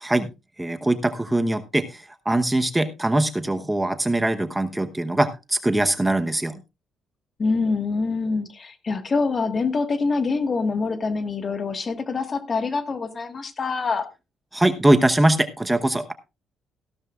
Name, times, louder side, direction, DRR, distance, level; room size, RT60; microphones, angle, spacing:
voice 1, 0.6-6.6 14.5-16.1, right 1 dB, 10° right, 9 dB, 0.9 m, -22 dB
voice 2, 7.4-14.1, left 4 dB, 40° left, 9 dB, 1.6 m, -25 dB
15.5 x 12.5 x 2.4 m, 0.26 s
cardioid pair, 90°, 0 cm